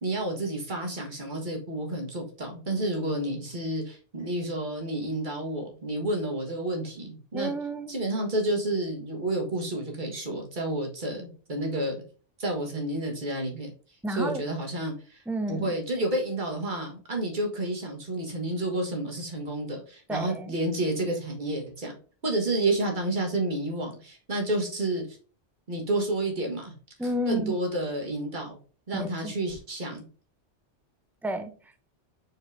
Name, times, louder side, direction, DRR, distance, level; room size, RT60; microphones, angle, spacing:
voice 1, 0.0-7.5 7.9-12.0 12.4-13.7 14.1-15.2 15.5-21.9 22.2-25.0 25.7-26.7 27.3-28.6 28.9-30.0, right 1 dB, 40° right, 1 dB, 1.7 m, -30 dB
voice 2, 7.3-8.0 14.0-14.4 15.3-15.7 20.1-20.6 27.0-27.6 28.9-29.3 31.2-31.5, right 1 dB, 5° right, 7 dB, 0.4 m, -31 dB
5.0 x 4.3 x 4.8 m, 0.39 s
omnidirectional pair, 1.2 m